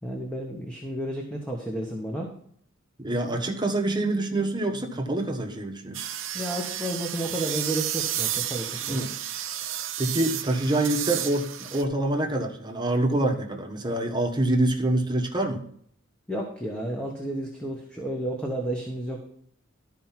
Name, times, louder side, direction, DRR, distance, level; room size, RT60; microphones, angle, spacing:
voice 1, 0.0-2.3 6.3-9.0 16.3-19.2, right 1 dB, 5° left, -1 dB, 1.3 m, -32 dB
voice 2, 3.0-6.0 8.9-9.1 9.6-9.7 10.0-15.6, right 1 dB, 20° right, 2 dB, 1.3 m, -26 dB
sound 1, 5.9-11.8, right 11 dB, 70° right, 0.8 m, -32 dB
12.5 x 4.7 x 5.8 m, 0.63 s
head